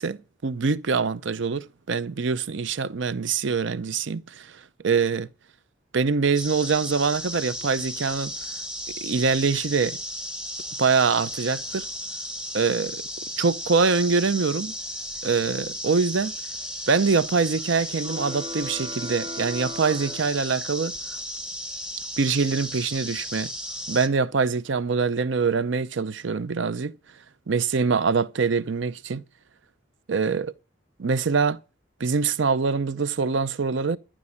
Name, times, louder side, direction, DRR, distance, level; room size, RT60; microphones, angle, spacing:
voice 1, 0.0-5.3 5.9-8.3 9.0-10.0 10.8-11.9 12.5-13.0 13.4-14.7 15.2-16.3 16.9-20.9 22.2-23.5 23.9-26.9 27.5-29.2 30.1-30.5 31.0-31.6 32.0-34.0, right 5 dB, 70° right, 0.6 m, -24 dB
sound 1, 6.3-24.1, equal, 5° right, 0.8 m, -35 dB
sound 2, 18.0-21.0, equal, 25° right, 2.4 m, -38 dB
14.0 x 6.0 x 8.6 m
head